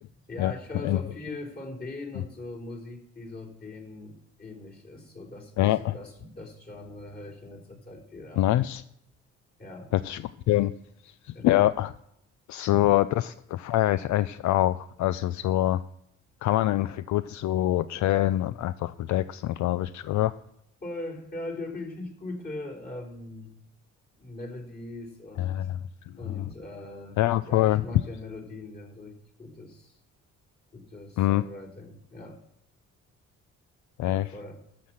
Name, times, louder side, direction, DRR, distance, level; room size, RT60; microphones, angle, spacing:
voice 1, 0.3-8.4 9.6-9.9 11.3-11.7 20.8-23.5 24.2-25.7 26.2-27.2 27.4-29.9 30.7-32.4 34.0-34.6, left 2 dB, 30° left, -2 dB, 3.6 m, -40 dB
voice 2, 5.6-5.9 8.4-8.8 9.9-10.7 11.2-11.9 12.5-15.8 16.4-20.3 25.4-25.8 26.3-26.5 27.2-27.8 31.2-31.4 34.0-34.3, left 14 dB, 70° left, 15 dB, 0.5 m, -25 dB
12.5 x 5.9 x 7.3 m, 0.75 s
cardioid pair, 90°, 30 cm